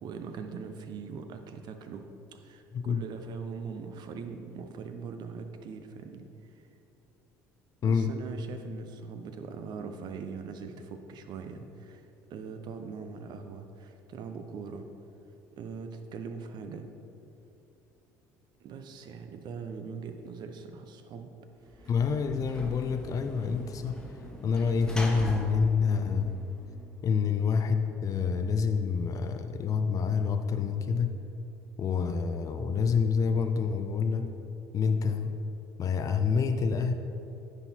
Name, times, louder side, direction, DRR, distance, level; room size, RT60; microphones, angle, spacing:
voice 1, 0.0-2.1 2.3-6.3 7.8-12.0 12.3-14.9 15.5-16.9 18.6-21.3 21.7-21.9, right 5 dB, 55° right, 7 dB, 0.7 m, -41 dB
voice 2, 2.7-3.0 7.8-8.1 21.9-24.0 24.4-26.4 27.0-31.1 31.8-34.3 34.7-35.3 35.8-36.9, left 5 dB, 40° left, 7 dB, 0.5 m, -27 dB
Sliding door / Slam, 21.6-27.0, left 1 dB, 10° left, 1.3 m, -42 dB
9.9 x 4.0 x 4.3 m, 2.8 s
hypercardioid pair, 65°, 9 cm